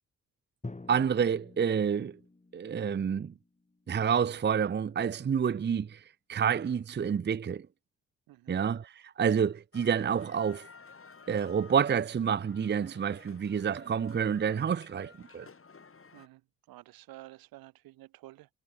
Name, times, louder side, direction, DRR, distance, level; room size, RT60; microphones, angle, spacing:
Drum, 0.6-4.4, left 2 dB, 20° left, 6.4 m, -48 dB
voice 1, 0.9-2.2 2.5-3.3 3.9-6.0 6.3-7.7 8.5-10.7 11.3-15.5, right 7 dB, 30° right, 0.7 m, -28 dB
voice 2, 8.3-8.6 16.1-18.5, right 17 dB, 80° right, 6.5 m, -51 dB
sound 1, 9.7-16.3, left 5 dB, 40° left, 6.5 m, -54 dB
hypercardioid pair, 50°, 35 cm